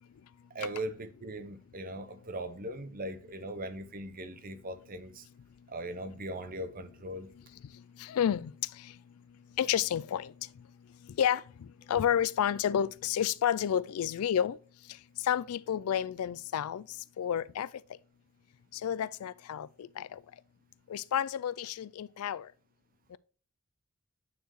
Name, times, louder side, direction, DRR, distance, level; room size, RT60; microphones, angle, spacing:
voice 1, 0.5-5.2 5.7-7.3, right 1 dB, 40° right, 0.8 m, -39 dB
voice 2, 8.0-8.5 9.6-10.3 11.2-11.4 11.9-14.6 15.2-16.8 17.2-17.7 18.8-20.2 20.9-22.5 23.1-23.2, left 9 dB, 80° left, 0.3 m, -30 dB
9.4 x 4.5 x 3.0 m
head